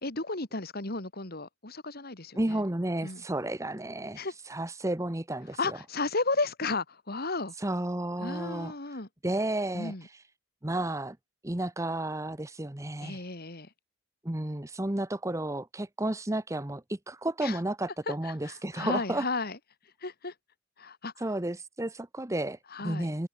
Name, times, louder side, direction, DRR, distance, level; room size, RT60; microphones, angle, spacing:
voice 1, 0.0-2.6 3.0-3.2 4.2-4.3 5.6-7.5 8.2-9.1 9.7-10.1 13.0-13.7 17.4-17.6 18.1-19.6 20.0-20.3 20.8-21.2 22.7-23.1, left 3 dB, 45° left, 2.4 m, -34 dB
voice 2, 2.3-4.2 4.5-5.8 7.6-8.7 9.2-9.9 10.6-11.2 11.4-13.2 14.2-19.2 21.2-22.6 22.8-23.3, right 1 dB, 15° right, 0.9 m, -32 dB
open air
head